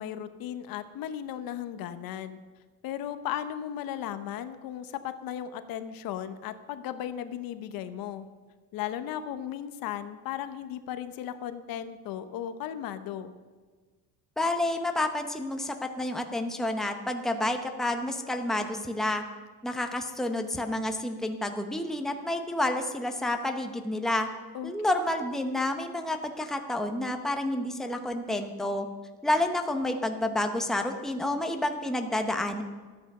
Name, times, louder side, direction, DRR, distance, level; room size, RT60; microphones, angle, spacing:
voice 1, 0.0-2.4 2.8-8.2 8.7-13.3 24.5-24.7, left 10 dB, 65° left, 11 dB, 1.0 m, -36 dB
voice 2, 14.4-19.2 19.6-24.3 24.6-28.9 29.2-32.6, left 1 dB, ahead, 5 dB, 0.9 m, -29 dB
14.0 x 9.7 x 6.6 m, 1.4 s
cardioid pair, 150°, 37 cm